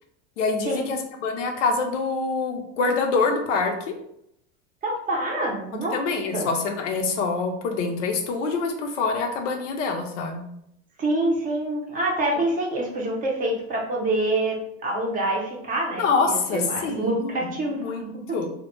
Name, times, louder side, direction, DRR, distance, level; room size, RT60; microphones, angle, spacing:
voice 1, 0.4-3.9 5.9-10.4 16.0-17.4 17.8-18.0 18.3-18.5, left 4 dB, 85° left, 4 dB, 0.6 m, -25 dB
voice 2, 4.8-6.0 6.3-6.5 11.0-18.4, right 1 dB, 25° right, -1 dB, 0.5 m, -26 dB
2.1 x 2.1 x 3.0 m, 0.74 s
supercardioid pair, 120°, 35 cm